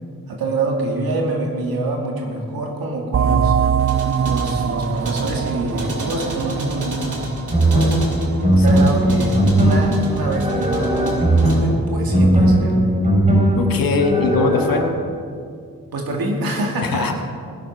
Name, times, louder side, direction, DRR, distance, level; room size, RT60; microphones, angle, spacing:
voice 1, 0.3-3.6 4.2-7.3 7.7-8.0 8.5-12.9 15.9-17.1, right 2 dB, 85° right, 0 dB, 2.2 m, -25 dB
sound 1, 3.1-8.4, right 7 dB, 40° right, 0.5 m, -22 dB
sound 2, 3.7-11.6, right 2 dB, 60° right, 3.0 m, -30 dB
sound 3, 7.5-14.9, right 1 dB, 20° right, 3.6 m, -18 dB
voice 2, 13.6-14.9 16.8-17.1, left 4 dB, 75° left, 4 dB, 1.6 m, -20 dB
18.5 x 10.5 x 4.6 m, 2.2 s
cardioid pair, 50°, 35 cm